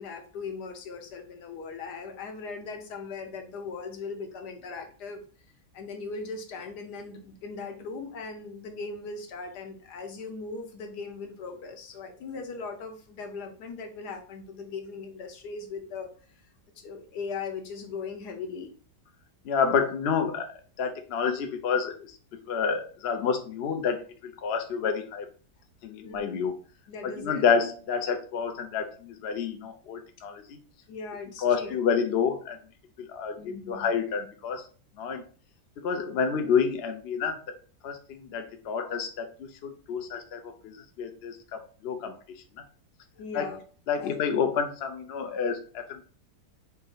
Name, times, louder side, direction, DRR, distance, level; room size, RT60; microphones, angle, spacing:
voice 1, 0.0-5.2 5.7-16.1 16.8-18.7 26.0-26.4 26.9-27.4 30.9-31.7 33.4-33.9 43.2-43.6 44.0-44.1, left 4 dB, 75° left, 4 dB, 1.4 m, -39 dB
voice 2, 19.4-20.5 20.8-22.2 22.5-24.0 24.2-25.3 25.8-26.6 27.0-30.6 31.4-32.6 33.0-34.6 35.0-35.2 35.8-37.4 37.8-42.1 43.3-43.6 43.9-46.0, left 6 dB, 60° left, 6 dB, 0.6 m, -29 dB
4.3 x 2.7 x 3.8 m, 0.40 s
omnidirectional pair, 1.8 m